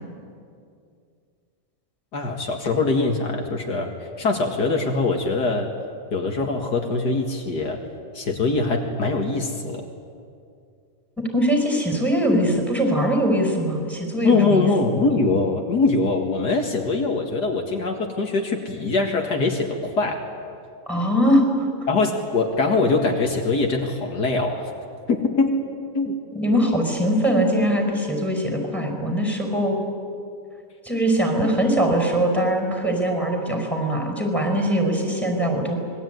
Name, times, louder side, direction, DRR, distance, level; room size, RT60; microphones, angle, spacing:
voice 1, 2.1-3.9 4.2-5.7 6.1-7.8 8.1-9.9 14.2-20.2 21.9-24.7 25.1-25.6 25.9-26.2 26.5-26.7, left 3 dB, 70° left, 2 dB, 2.5 m, -22 dB
voice 2, 11.2-14.7 20.9-21.7 26.3-29.8 30.8-35.8, equal, ahead, 3 dB, 5.3 m, -22 dB
26.5 x 21.5 x 9.4 m, 2.3 s
omnidirectional pair, 1.8 m